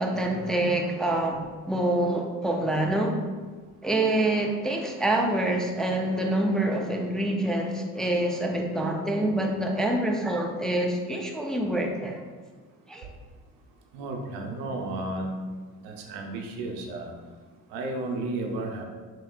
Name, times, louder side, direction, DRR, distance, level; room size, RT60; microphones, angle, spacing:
voice 1, 0.0-3.2 3.8-12.2 12.9-13.1, right 1 dB, ahead, 1 dB, 0.5 m, -26 dB
voice 2, 13.9-18.8, right 2 dB, 85° right, 2 dB, 0.7 m, -34 dB
5.5 x 2.9 x 2.4 m, 1.4 s
supercardioid pair, 60°, 43 cm